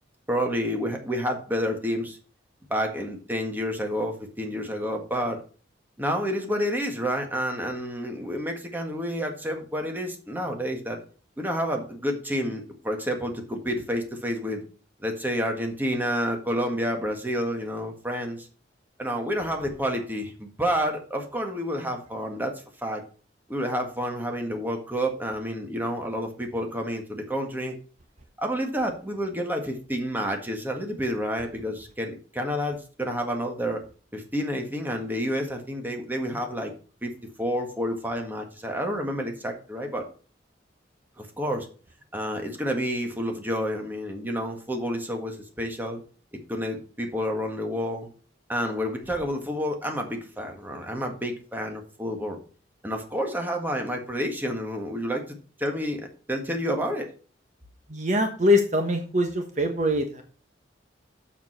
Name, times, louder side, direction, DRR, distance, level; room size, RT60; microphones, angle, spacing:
voice 1, 0.3-2.2 2.7-5.4 6.0-11.0 11.4-14.6 15.0-18.5 19.0-23.0 23.5-27.8 28.4-33.8 34.1-36.7 37.0-37.1 37.4-40.1 41.2-41.7 42.1-46.0 46.5-48.1 48.5-52.4 52.8-56.0 56.3-57.1, equal, 10° right, 3 dB, 1.7 m, -29 dB
voice 2, 57.9-60.2, left 1 dB, 40° right, 5 dB, 1.2 m, -23 dB
7.2 x 7.2 x 5.7 m, 0.39 s
head